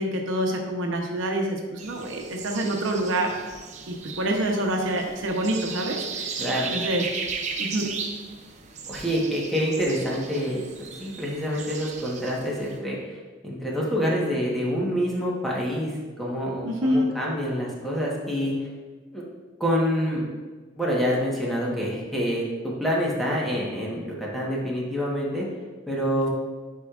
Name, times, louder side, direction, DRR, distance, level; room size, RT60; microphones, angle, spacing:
voice 1, 0.0-3.3 3.9-6.4 6.7-7.0 7.6-7.9 16.6-17.1, right 1 dB, 85° right, 1 dB, 0.9 m, -26 dB
sound 1, 1.8-12.8, right 5 dB, 35° right, 0.5 m, -36 dB
voice 2, 6.4-6.7 8.9-13.2 13.4-18.5 19.1-19.2 19.6-20.2 20.8-25.4 25.9-26.3, equal, ahead, -5 dB, 1.2 m, -27 dB
9.5 x 4.7 x 2.5 m, 1.4 s
head